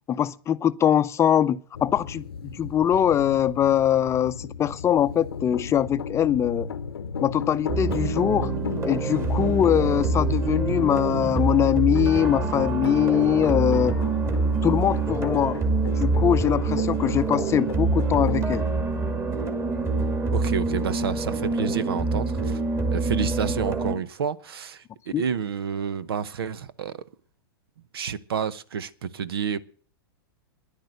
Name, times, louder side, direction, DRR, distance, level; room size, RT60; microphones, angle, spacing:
voice 1, 0.1-6.7 7.2-8.5 8.8-13.9 14.6-15.6 16.0-18.6 25.1-25.2, left 10 dB, 20° left, 0.6 m, -22 dB
sound 1, 1.7-18.5, left 6 dB, 90° left, 0.8 m, -34 dB
sound 2, 7.7-23.9, right 3 dB, 20° right, 2.4 m, -26 dB
voice 2, 20.3-22.6 22.9-27.0 27.9-29.6, right 7 dB, 80° right, 0.9 m, -29 dB
10.5 x 10.5 x 8.0 m
hypercardioid pair, 120°, 12 cm